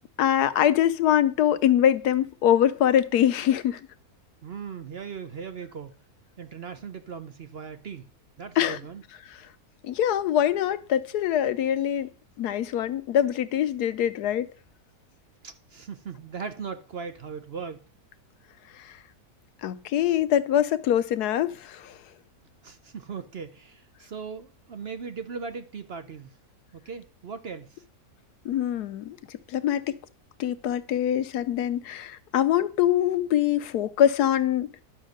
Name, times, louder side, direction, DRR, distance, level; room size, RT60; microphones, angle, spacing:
voice 1, 0.2-3.8 8.6-8.8 9.3-9.4 9.8-12.1 12.4-14.5 18.8-19.0 19.6-22.0 28.4-30.0 30.4-34.7, left 10 dB, 85° left, 1.3 m, -24 dB
voice 2, 4.4-5.9 6.4-8.1 8.4-9.0 15.4-17.8 22.6-26.3 26.7-27.8, right 6 dB, 50° right, 0.8 m, -38 dB
11.0 x 6.2 x 6.5 m
omnidirectional pair, 1.6 m